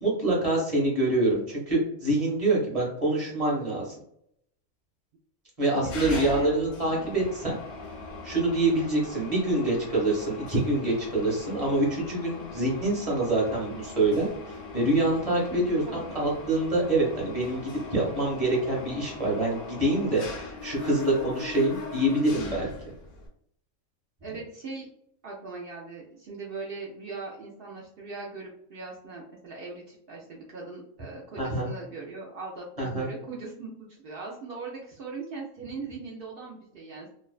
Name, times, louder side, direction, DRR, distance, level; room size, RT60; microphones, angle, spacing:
voice 1, 0.0-3.9 5.6-7.6 8.2-22.7 31.4-31.7 32.8-33.1, right 2 dB, 30° right, -3 dB, 0.8 m, -26 dB
Mechanisms, 5.8-23.3, left 3 dB, 60° left, 0.6 m, -40 dB
voice 2, 5.8-6.5 15.5-16.3 24.2-24.9 25.2-33.7 34.0-37.1, right 4 dB, 80° right, -4 dB, 0.5 m, -40 dB
2.5 x 2.2 x 2.3 m, 0.71 s
omnidirectional pair, 1.5 m